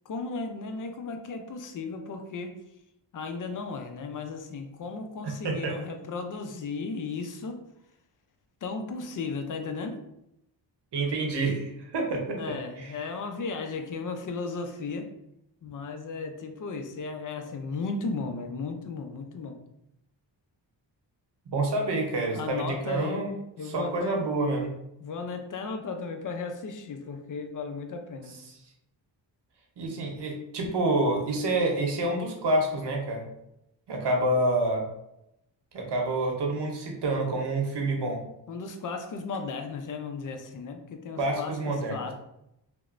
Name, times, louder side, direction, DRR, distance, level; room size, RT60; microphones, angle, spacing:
voice 1, 0.1-2.6 3.1-7.6 8.6-10.0 12.4-15.1 15.6-19.6 22.3-23.2 23.6-24.2 25.0-28.4 38.5-42.1, left 4 dB, 45° left, 6 dB, 0.4 m, -35 dB
voice 2, 5.2-5.9 10.9-12.9 21.5-23.3 23.6-24.7 29.8-33.2 33.9-34.9 35.7-38.2 41.2-42.1, right 2 dB, 60° right, 1 dB, 0.8 m, -28 dB
2.9 x 2.1 x 2.4 m, 0.83 s
cardioid pair, 65°, 45 cm